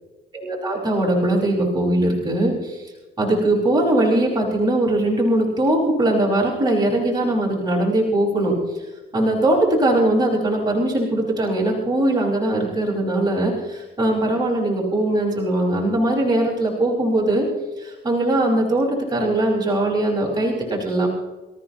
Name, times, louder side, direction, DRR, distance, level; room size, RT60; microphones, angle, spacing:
voice 1, 0.3-8.8 9.1-17.5 17.8-21.1, right 1 dB, 20° right, -4 dB, 5.2 m, -21 dB
27.0 x 14.5 x 2.9 m, 1.2 s
cardioid pair, 90°, 20 cm